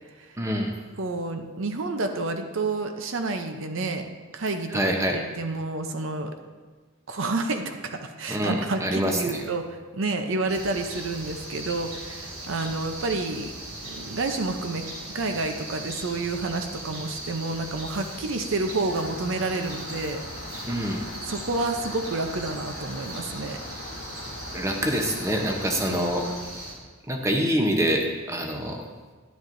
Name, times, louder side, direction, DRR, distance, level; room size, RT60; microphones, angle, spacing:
voice 1, 0.4-0.7 4.7-5.2 8.3-9.4 20.7-21.1 24.5-26.3 27.1-28.8, equal, 15° right, 2 dB, 0.7 m, -25 dB
voice 2, 1.0-4.0 4.3-4.9 5.4-6.3 7.1-13.5 13.8-14.8 15.1-20.2 21.2-23.6 25.9-26.1, right 3 dB, 60° right, 6 dB, 0.6 m, -29 dB
sound 1, 10.5-26.7, right 1 dB, 85° right, 2.0 m, -39 dB
Rain, 18.9-26.4, left 3 dB, 60° left, 0.9 m, -41 dB
11.0 x 10.0 x 2.6 m, 1.3 s
head